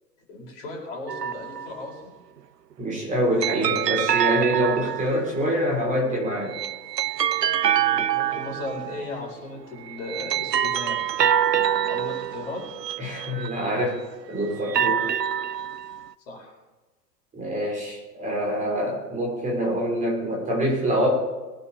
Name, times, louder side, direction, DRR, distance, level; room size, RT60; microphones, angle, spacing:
voice 1, 0.3-2.1 7.7-11.0 11.9-12.6 16.3-16.5, left 2 dB, 45° left, 0 dB, 4.5 m, -36 dB
sound 1, 1.1-1.8 3.4-5.4 6.3-9.1 9.8-13.9 14.5-16.1, right 10 dB, 75° right, 0.6 m, -26 dB
voice 2, 2.8-6.5 13.0-14.0 14.3-15.1 17.3-21.1, equal, 15° right, -2 dB, 3.8 m, -25 dB
22.0 x 9.7 x 3.4 m, 1.2 s
figure-of-eight pair, 105°, 49 cm